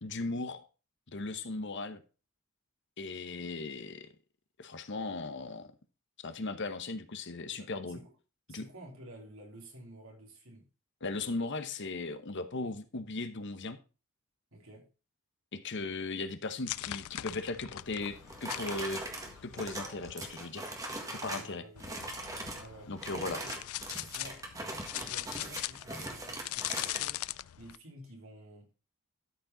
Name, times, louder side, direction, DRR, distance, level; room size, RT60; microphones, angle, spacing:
voice 1, 0.0-0.6 1.1-2.0 3.0-4.1 4.6-5.7 6.2-8.0 8.5-8.6 11.0-13.8 15.5-19.0 19.4-20.7 21.1-21.6 22.9-23.4, left 3 dB, 55° left, 1.0 m, -37 dB
voice 2, 7.5-8.1 8.5-10.7 14.5-14.9 21.3-22.1 22.5-22.9 23.3-23.5 24.1-24.4 25.0-27.2 27.6-28.7, right 1 dB, 70° right, 3.4 m, -51 dB
sound 1, 16.7-20.1 21.8-27.8, left 15 dB, 85° left, 0.4 m, -41 dB
sound 2, 18.0-21.5 21.8-22.7 23.0-27.0, right 1 dB, 15° right, 1.7 m, -41 dB
12.5 x 5.2 x 3.9 m
head